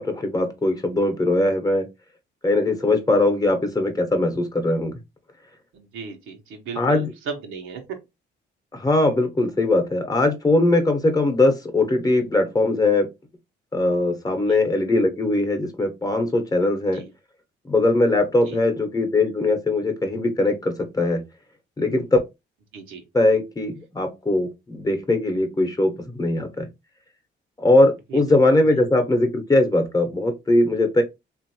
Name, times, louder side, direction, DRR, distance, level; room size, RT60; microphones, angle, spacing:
voice 1, 0.0-1.9 2.4-5.0 6.8-7.1 8.7-13.1 13.7-17.0 17.7-21.2 21.8-22.2 23.1-26.7 27.6-31.0, left 2 dB, 20° left, 0.9 m, -20 dB
voice 2, 5.7-7.8 14.5-14.6 16.9-17.1 18.5-18.6 22.7-23.0 28.1-28.2, right 5 dB, 85° right, 0.9 m, -36 dB
3.0 x 2.5 x 2.9 m
cardioid pair, 90°, 20 cm